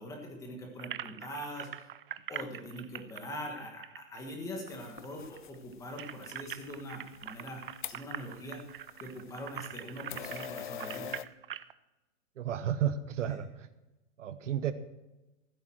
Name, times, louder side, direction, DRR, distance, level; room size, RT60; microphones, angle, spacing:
voice 1, 0.0-1.9 2.3-7.6 7.9-8.6 9.0-11.1, equal, 10° left, 2 dB, 1.5 m, -42 dB
sound 1, 0.8-4.7 5.0-5.1 5.4-11.7, right 11 dB, 45° right, 0.4 m, -43 dB
sound 2, 4.7-11.2, left 10 dB, 40° left, 0.4 m, -46 dB
voice 2, 12.4-13.7 14.2-14.7, right 9 dB, 65° right, 12 dB, 1.0 m, -32 dB
15.0 x 8.1 x 6.3 m, 1.0 s
hypercardioid pair, 165°, 40 cm